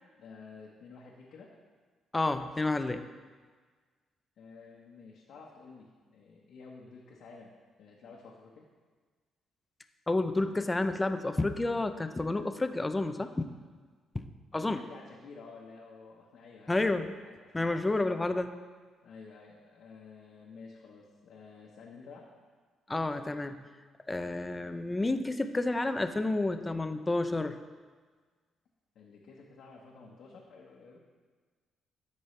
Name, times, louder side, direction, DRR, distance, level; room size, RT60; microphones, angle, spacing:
voice 1, 0.0-1.6 4.4-7.5 7.8-8.7 14.7-16.8 17.2-18.0 19.0-22.3 28.9-31.0, left 4 dB, 70° left, -3 dB, 1.1 m, -51 dB
voice 2, 2.1-3.0 10.1-13.5 14.1-14.2 14.5-14.8 16.7-17.1 17.5-18.5 22.9-23.6 24.1-27.6, left 2 dB, 20° left, 9 dB, 0.5 m, -30 dB
13.5 x 5.3 x 3.3 m, 1.5 s
cardioid pair, 90°, 0 cm